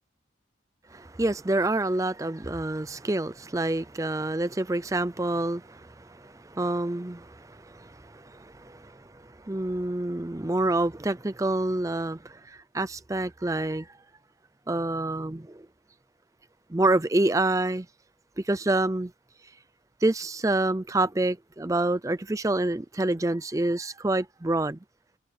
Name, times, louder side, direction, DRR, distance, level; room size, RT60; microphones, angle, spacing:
voice 1, 0.9-13.9 14.7-15.7 16.7-17.9 18.4-19.1 20.0-24.8, right 2 dB, 15° right, 0.5 m, -27 dB
head